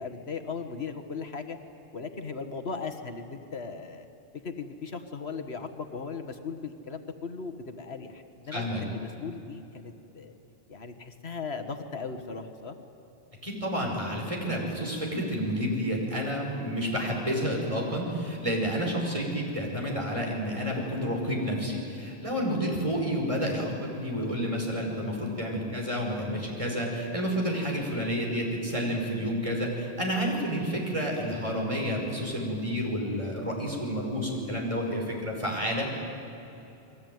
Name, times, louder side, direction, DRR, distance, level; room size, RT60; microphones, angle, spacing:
voice 1, 0.0-1.6 1.9-4.1 4.4-10.3 10.7-12.8, left 5 dB, 80° left, 7 dB, 1.8 m, -38 dB
voice 2, 8.5-8.8 13.4-36.0, equal, 30° right, -1 dB, 5.5 m, -30 dB
29.5 x 21.5 x 9.4 m, 2.9 s
omnidirectional pair, 1.1 m